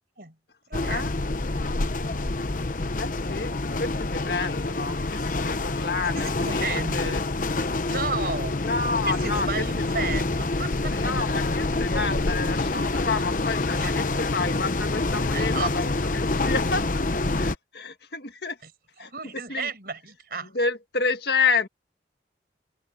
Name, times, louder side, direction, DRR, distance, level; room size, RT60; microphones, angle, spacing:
sound 1, 0.7-17.6, left 2 dB, 45° left, 0.9 m, -27 dB
voice 1, 0.7-1.1 5.8-7.2 7.9-8.7 9.0-11.0 13.7-13.9 15.3-15.7 19.0-20.5, right 4 dB, 55° right, 5.5 m, -33 dB
voice 2, 3.0-3.5 3.8-7.2 8.6-9.8 10.9-16.9 17.4-18.6 19.0-19.1 19.5-19.7 20.4-21.7, left 4 dB, 65° left, 1.7 m, -29 dB
head